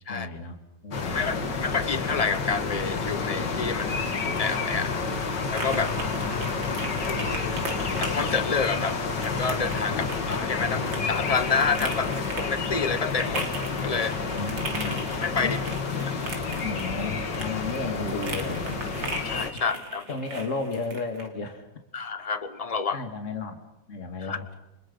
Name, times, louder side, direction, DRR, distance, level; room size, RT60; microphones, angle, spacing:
voice 1, 0.1-0.6 0.8-1.4 4.7-5.2 6.7-7.7 9.9-10.0 11.7-12.2 14.3-15.0 15.4-15.6 16.6-18.8 20.1-21.7 22.9-24.5, left 3 dB, 40° left, 6 dB, 2.4 m, -34 dB
sound 1, 0.9-19.5, left 4 dB, 65° left, 2.7 m, -29 dB
voice 2, 1.0-4.1 4.4-4.9 5.5-5.9 7.0-7.6 8.0-13.5 13.8-14.2 14.9-15.6 19.2-20.1 21.9-23.0 24.3-24.4, left 5 dB, 25° left, 12 dB, 1.0 m, -29 dB
sound 2, 4.1-21.3, right 3 dB, 90° right, 3.7 m, -39 dB
29.0 x 25.5 x 5.6 m, 0.91 s
omnidirectional pair, 2.0 m